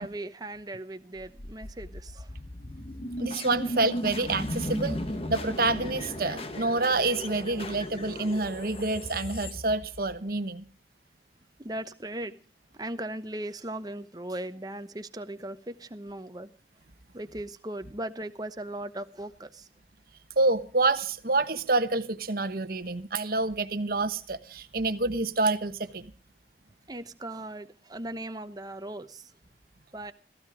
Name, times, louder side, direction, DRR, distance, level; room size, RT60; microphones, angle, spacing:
voice 1, 0.0-2.3 11.6-12.4 12.7-16.5 17.1-19.7 26.9-29.3 29.9-30.1, right 1 dB, 20° right, 0.9 m, -38 dB
sound 1, 1.2-10.3, left 1 dB, 30° left, 1.3 m, -36 dB
voice 2, 3.2-10.6 20.4-26.1, right 3 dB, 50° right, 1.2 m, -28 dB
16.0 x 15.0 x 5.0 m
head